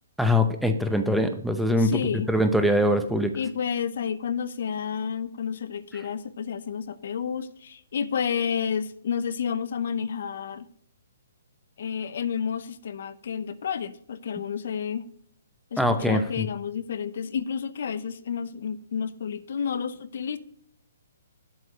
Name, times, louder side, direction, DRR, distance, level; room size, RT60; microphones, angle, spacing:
voice 1, 0.2-2.0 2.3-3.3 15.8-16.5, left 1 dB, ahead, 6 dB, 0.7 m, -23 dB
voice 2, 1.8-2.3 3.3-10.7 11.8-15.1 15.7-20.4, left 7 dB, 60° left, 14 dB, 0.7 m, -30 dB
7.9 x 4.8 x 6.7 m, 0.62 s
hypercardioid pair, 155°, 0 cm